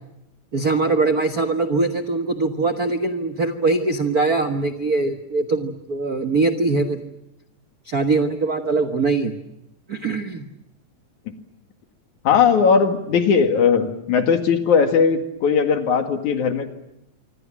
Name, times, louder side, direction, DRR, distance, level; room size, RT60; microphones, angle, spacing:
voice 1, 0.5-7.1 7.8-9.3 9.9-10.5, right 3 dB, 60° right, 7 dB, 0.9 m, -22 dB
voice 2, 12.2-16.7, left 6 dB, 60° left, 7 dB, 3.3 m, -18 dB
26.0 x 26.0 x 7.5 m, 0.87 s
omnidirectional pair, 4.0 m